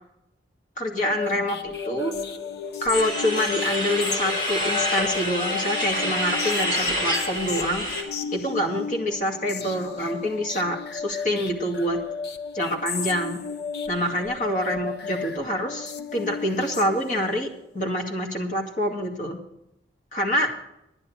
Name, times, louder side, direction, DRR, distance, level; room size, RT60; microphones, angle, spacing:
voice 1, 0.8-2.1 2.8-7.9 8.3-12.0 12.5-13.4 13.9-19.4 20.1-20.5, equal, 45° left, 1 dB, 2.3 m, -26 dB
sound 1, 1.0-17.4, left 6 dB, 65° left, 0.9 m, -34 dB
sound 2, 2.9-8.0, equal, 30° left, 3.3 m, -27 dB
10.5 x 10.0 x 6.5 m, 0.81 s
head